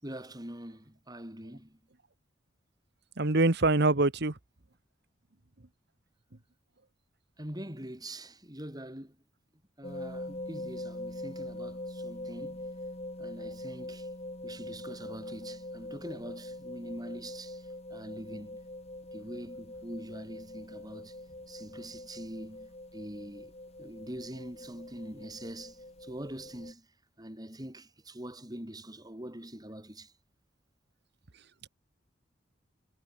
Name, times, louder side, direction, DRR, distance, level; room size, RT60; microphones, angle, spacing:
voice 1, 0.0-1.8 7.4-9.2 9.8-12.7 13.2-14.1 14.4-18.6 19.1-21.2 21.5-23.5 23.8-26.9 27.2-30.1, right 1 dB, 20° right, 6.2 m, -44 dB
voice 2, 3.2-4.3, right 2 dB, 60° right, 1.5 m, -24 dB
sound 1, 9.8-26.7, left 1 dB, 35° left, 7.8 m, -43 dB
head